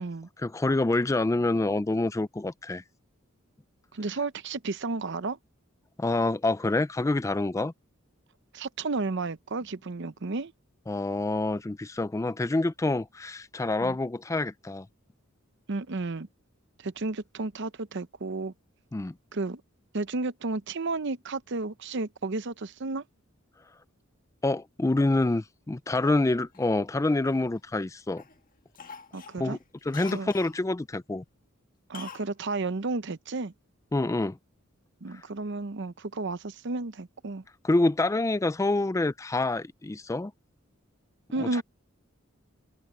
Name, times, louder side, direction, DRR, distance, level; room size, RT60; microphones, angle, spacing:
voice 1, 0.4-2.8 6.0-7.7 10.9-14.9 18.9-19.1 24.4-28.2 29.4-29.6 29.9-31.2 33.9-34.4 37.6-40.3 41.4-41.6, left 2 dB, 15° left, 0.4 m, -27 dB
voice 2, 3.9-5.4 8.5-10.5 13.8-14.0 15.7-16.3 16.8-18.5 19.3-19.6 19.9-23.0 29.1-29.6 30.1-30.3 31.9-33.5 35.0-37.4 41.3-41.6, right 3 dB, 60° right, 0.8 m, -32 dB
Cough, 26.5-27.8 28.2-28.4 28.7-30.6 31.9-32.3 32.6-32.7, left 6 dB, 45° left, 1.6 m, -46 dB
open air
head